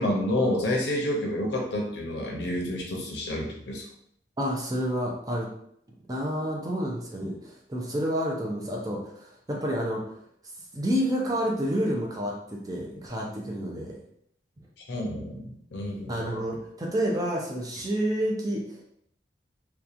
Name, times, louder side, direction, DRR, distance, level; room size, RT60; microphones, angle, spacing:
voice 1, 0.0-3.8 14.9-16.2, left 1 dB, 70° left, 0 dB, 0.7 m, -29 dB
voice 2, 4.4-5.5 6.1-10.0 10.7-14.0 16.1-18.9, equal, 20° right, -2 dB, 0.4 m, -29 dB
2.8 x 2.2 x 2.5 m, 0.69 s
head